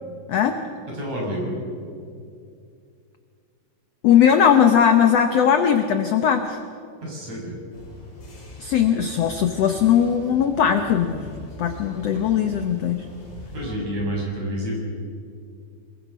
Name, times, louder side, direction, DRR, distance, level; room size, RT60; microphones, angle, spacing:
voice 1, 0.9-1.6 7.0-7.5 12.0-12.1 13.5-14.8, equal, 50° right, -3 dB, 7.7 m, -29 dB
voice 2, 4.0-6.6 8.6-13.0, left 8 dB, 70° left, 7 dB, 1.5 m, -19 dB
sound 1, 7.7-13.7, left 2 dB, 45° left, 6.6 m, -41 dB
26.0 x 21.5 x 5.6 m, 2.4 s
omnidirectional pair, 4.0 m